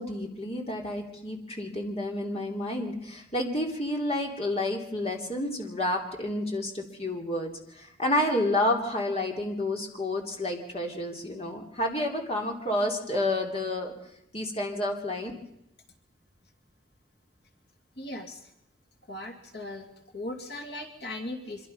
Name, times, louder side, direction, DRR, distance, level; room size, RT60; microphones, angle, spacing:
voice 1, 0.0-13.9 14.3-15.3, left 1 dB, 30° left, 1 dB, 3.1 m, -30 dB
voice 2, 18.0-18.5 19.0-19.9 20.1-21.7, left 1 dB, 60° left, 2 dB, 2.8 m, -38 dB
25.5 x 23.5 x 5.7 m, 0.82 s
head